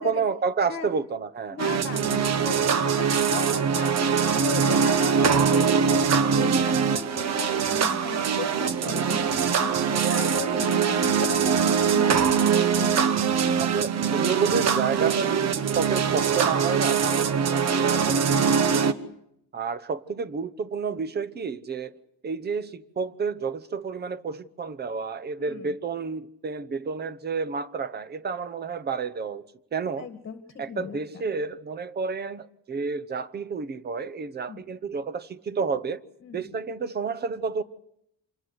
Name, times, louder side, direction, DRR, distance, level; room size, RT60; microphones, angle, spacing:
voice 1, 0.0-1.6 10.5-10.8 13.6-18.8 19.5-21.9 22.2-29.4 29.7-30.1 30.6-36.0 36.3-37.6, right 5 dB, 30° right, 0.9 m, -30 dB
voice 2, 1.5-4.0 4.4-13.9 25.4-25.7 30.0-30.4 30.7-31.2 34.5-34.6 36.2-36.5, left 6 dB, 35° left, 1.9 m, -37 dB
sound 1, 1.6-18.9, right 6 dB, 50° right, 1.2 m, -23 dB
27.0 x 21.0 x 8.0 m
cardioid pair, 170°, 33 cm